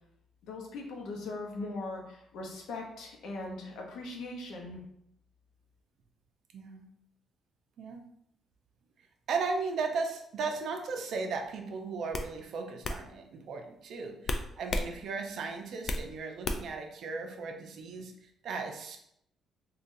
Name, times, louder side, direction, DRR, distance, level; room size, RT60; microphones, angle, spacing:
voice 1, 0.4-4.8, left 2 dB, 85° left, 0 dB, 0.7 m, -40 dB
voice 2, 6.5-6.8 7.8-8.1 9.3-19.0, right 4 dB, 70° right, 4 dB, 0.5 m, -36 dB
sound 1, 11.3-11.6 12.1-12.3 12.8-13.0 14.3-14.9 15.3-16.1 16.4-16.8, left 2 dB, 50° left, 0.3 m, -32 dB
3.8 x 2.3 x 2.6 m, 0.74 s
cardioid pair, 90°, 0 cm